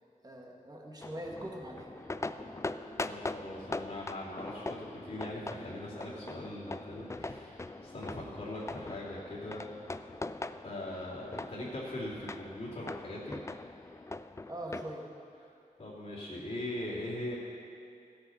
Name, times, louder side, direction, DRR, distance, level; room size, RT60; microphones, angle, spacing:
voice 1, 0.2-1.9 14.5-15.0, right 1 dB, 25° right, -1 dB, 1.7 m, -42 dB
sound 1, 1.0-14.9, left 2 dB, 20° left, 0.3 m, -42 dB
sound 2, 2.0-14.1, equal, 70° left, 4.0 m, -56 dB
voice 2, 3.1-9.7 10.6-13.3 15.4-15.5 15.8-17.3, left 1 dB, 50° left, -11 dB, 2.8 m, -41 dB
15.5 x 8.5 x 5.7 m, 2.4 s
wide cardioid pair, 100°, 15 cm